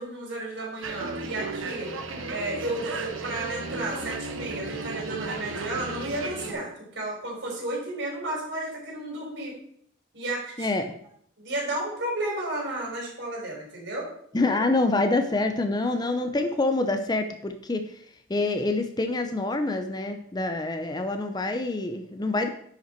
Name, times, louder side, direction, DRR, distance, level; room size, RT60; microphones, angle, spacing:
voice 1, 0.0-1.9 2.3-9.5 10.1-10.7 11.4-14.1, right 2 dB, 60° right, -2 dB, 3.9 m, -32 dB
sound 1, 0.8-6.5, right 3 dB, 85° right, 1.1 m, -35 dB
voice 2, 10.6-10.9 14.3-17.8 18.3-22.5, left 2 dB, 20° left, 7 dB, 0.5 m, -26 dB
10.0 x 5.6 x 4.4 m, 0.66 s
head